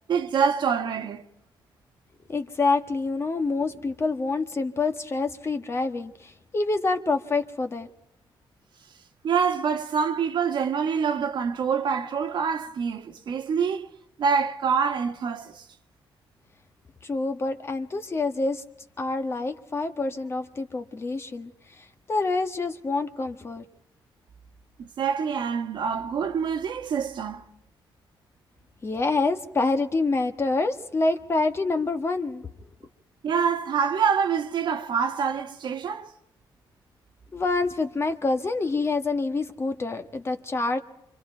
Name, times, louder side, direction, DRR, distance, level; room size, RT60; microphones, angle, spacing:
voice 1, 0.1-1.3 9.2-13.9 14.2-15.6 24.8-27.4 33.2-36.1, right 6 dB, 60° right, 1.5 m, -26 dB
voice 2, 2.3-7.9 17.0-18.6 19.0-21.5 22.1-23.6 28.8-32.4 37.3-40.8, left 3 dB, 30° left, 1.5 m, -27 dB
29.5 x 25.0 x 4.5 m
cardioid pair, 135°, 9 cm